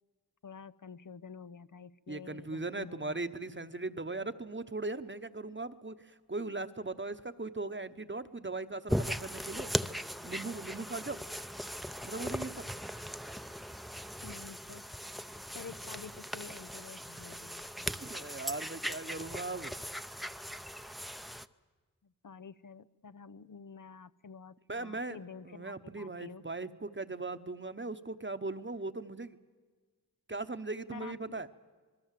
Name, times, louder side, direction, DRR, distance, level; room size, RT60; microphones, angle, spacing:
voice 1, 0.4-3.2 14.2-14.9 15.5-17.9 22.0-26.4 30.9-31.4, left 6 dB, 60° left, 14 dB, 0.6 m, -49 dB
voice 2, 2.1-9.7 10.2-11.2 12.0-12.7 18.0-19.8 24.7-25.2 25.4-29.4 30.3-31.5, right 3 dB, 35° right, 11 dB, 1.0 m, -39 dB
sound 1, 8.9-21.5, equal, ahead, 0.7 m, -39 dB
27.0 x 21.5 x 7.6 m, 1.4 s
wide cardioid pair, 50°, 35 cm